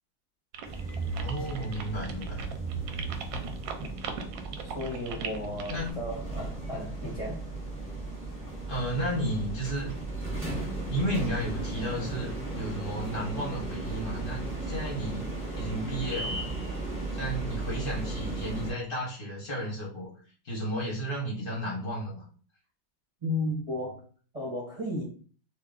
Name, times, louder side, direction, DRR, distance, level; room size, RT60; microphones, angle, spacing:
sound 1, 0.5-5.9, right 6 dB, 75° right, 1.2 m, -39 dB
sound 2, 0.6-18.7, right 2 dB, 5° right, 1.1 m, -36 dB
voice 1, 1.1-2.4 5.7-6.0 8.7-9.9 10.9-15.3 15.6-16.5 17.1-20.1 20.4-22.2, equal, 40° left, 0.8 m, -33 dB
voice 2, 4.7-7.4 23.2-24.0 24.3-25.0, left 1 dB, 25° right, 0.8 m, -34 dB
2.9 x 2.8 x 3.7 m
omnidirectional pair, 2.3 m